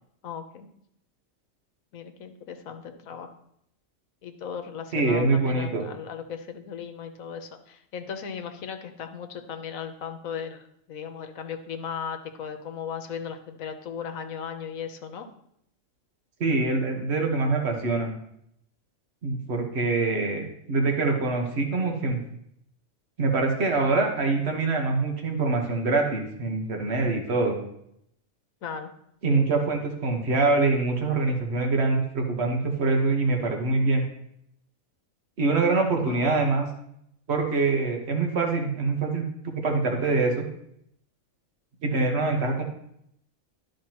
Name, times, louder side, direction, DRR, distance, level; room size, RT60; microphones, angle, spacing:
voice 1, 0.2-0.7 1.9-3.3 4.2-15.3 28.6-28.9 29.3-29.8 35.8-36.2, left 7 dB, 85° left, 6 dB, 1.2 m, -37 dB
voice 2, 4.9-5.8 16.4-18.1 19.2-22.2 23.2-27.6 29.2-34.0 35.4-36.7 37.3-39.2 39.6-40.4 41.8-42.6, right 3 dB, 50° right, 2 dB, 1.5 m, -24 dB
12.5 x 5.1 x 2.9 m, 0.75 s
omnidirectional pair, 1.4 m